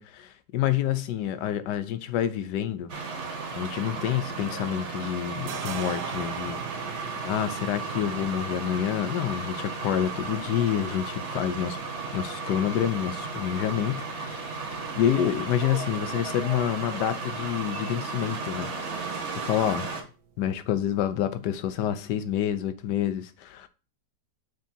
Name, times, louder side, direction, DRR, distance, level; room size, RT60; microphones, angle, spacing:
voice 1, 0.0-2.9 3.5-6.6 7.2-11.8 12.1-14.5 15.0-18.7 19.0-19.9 20.4-23.7, left 10 dB, 75° left, 1.3 m, -28 dB
sound 1, 2.9-20.0, right 4 dB, 45° right, 1.2 m, -34 dB
sound 2, 4.2-4.8 5.1-22.6, right 7 dB, 70° right, 1.3 m, -46 dB
6.5 x 6.5 x 2.7 m
omnidirectional pair, 1.9 m